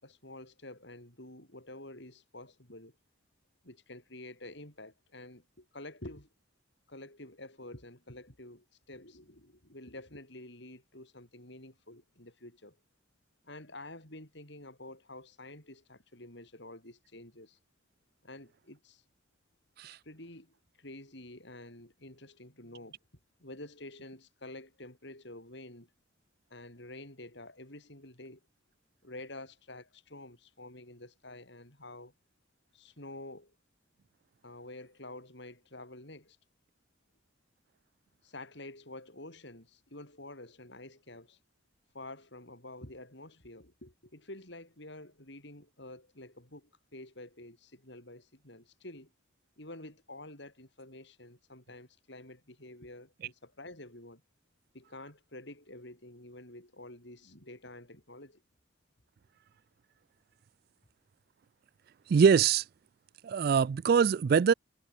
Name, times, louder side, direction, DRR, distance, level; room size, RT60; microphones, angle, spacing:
voice 1, 0.0-3.0 3.6-6.3 6.9-12.8 13.4-17.6 18.2-19.0 19.8-23.0 23.4-25.9 26.5-28.4 29.0-32.1 32.7-33.6 34.4-36.4 38.2-41.4 41.9-49.1 49.6-54.2 54.7-58.4, left 1 dB, 60° left, 7.6 m, -49 dB
voice 2, 62.1-62.6 63.2-64.5, right 6 dB, 50° right, 0.3 m, -23 dB
head